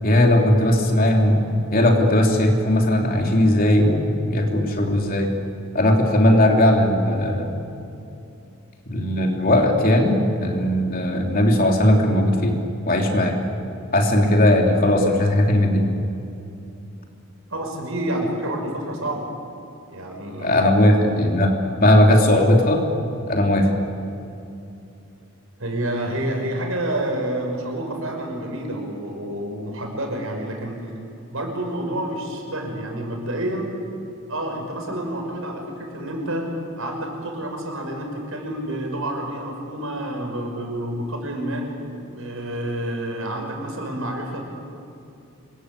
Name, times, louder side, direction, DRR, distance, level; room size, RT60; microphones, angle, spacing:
voice 1, 0.0-1.4 1.7-5.3 5.7-7.6 8.9-12.6 12.9-13.4 13.9-15.9 20.4-21.5 21.8-22.8 23.3-23.8, left 1 dB, 40° left, 1 dB, 3.4 m, -18 dB
voice 2, 17.5-19.3 19.9-20.7 25.6-30.8 31.3-33.7 34.3-36.5 36.8-41.7 42.0-44.4, right 1 dB, 75° right, 2 dB, 6.1 m, -28 dB
27.5 x 22.0 x 8.5 m, 2.7 s
head